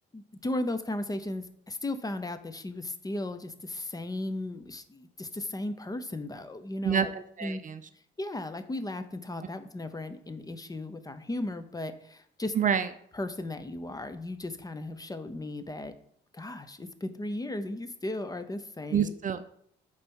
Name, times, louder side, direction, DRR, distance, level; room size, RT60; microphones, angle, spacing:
voice 1, 0.1-7.1 7.4-7.6 8.2-12.5 13.1-15.9 16.3-19.1, left 1 dB, 20° left, 10 dB, 0.7 m, -36 dB
voice 2, 6.8-7.8 12.6-12.9 18.9-19.4, right 7 dB, 40° right, 11 dB, 0.5 m, -27 dB
8.7 x 3.3 x 5.4 m, 0.67 s
cardioid pair, 90°, 20 cm